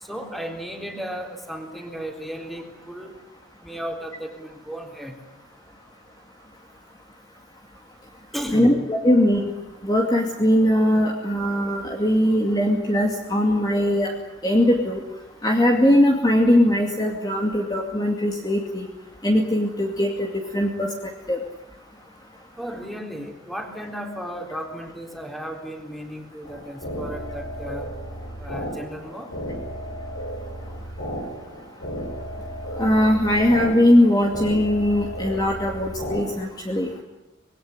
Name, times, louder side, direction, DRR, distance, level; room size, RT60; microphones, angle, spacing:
voice 1, 0.0-3.1 3.6-5.2 8.3-8.8 22.6-27.9 28.4-29.3, equal, ahead, 3 dB, 3.7 m, -34 dB
voice 2, 8.5-9.5 9.8-14.1 14.4-15.0 15.4-18.9 19.2-21.4 32.8-36.9, left 1 dB, 20° left, 1 dB, 2.4 m, -20 dB
sound 1, 26.4-36.2, equal, 65° left, 7.8 m, -34 dB
26.0 x 21.0 x 9.8 m, 0.96 s
head